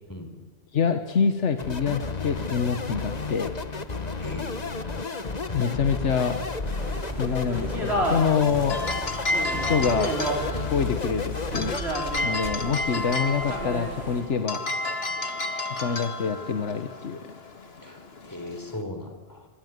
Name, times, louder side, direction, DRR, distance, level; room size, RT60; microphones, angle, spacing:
voice 1, 0.7-3.6 5.5-6.4 7.2-8.8 9.5-10.2 10.6-11.7 12.2-14.6 15.8-17.3, left 6 dB, 90° left, 8 dB, 1.5 m, -26 dB
sound 1, 1.6-11.8, left 4 dB, 35° left, 1.5 m, -32 dB
voice 2, 4.2-4.7 17.8-19.5, left 1 dB, 15° left, 5 dB, 4.1 m, -38 dB
sound 2, 6.7-14.2, right 1 dB, 65° right, 5.3 m, -33 dB
sound 3, 8.4-18.8, left 2 dB, 60° left, 2.1 m, -32 dB
25.0 x 24.5 x 9.5 m, 1.4 s
omnidirectional pair, 1.2 m